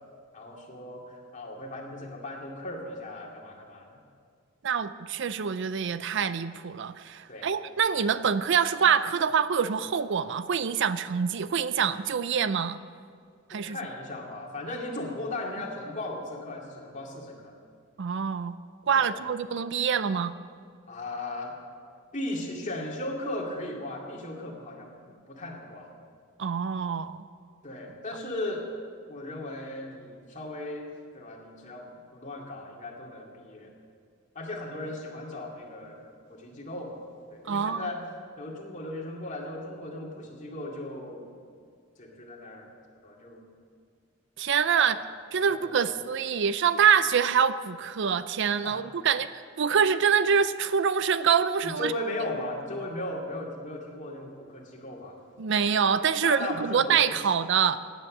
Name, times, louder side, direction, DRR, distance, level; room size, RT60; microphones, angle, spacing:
voice 1, 0.3-3.9 7.3-7.5 13.5-17.5 19.0-19.2 20.9-21.6 22.1-24.9 25.3-25.9 27.6-28.6 29.1-33.7 34.3-36.0 36.3-37.0 37.3-38.0 38.4-41.3 42.0-42.7 43.0-43.4 44.7-45.1 45.5-46.0 48.6-48.8 51.6-55.2 56.2-57.2, left 1 dB, 35° left, -1 dB, 2.3 m, -37 dB
voice 2, 4.6-12.8 13.5-13.8 18.0-18.6 18.9-20.3 26.4-27.2 37.5-37.9 44.4-45.0 45.3-49.3 49.6-51.9 55.4-57.8, right 7 dB, 60° right, 14 dB, 0.5 m, -25 dB
17.0 x 9.2 x 6.6 m, 2.2 s
head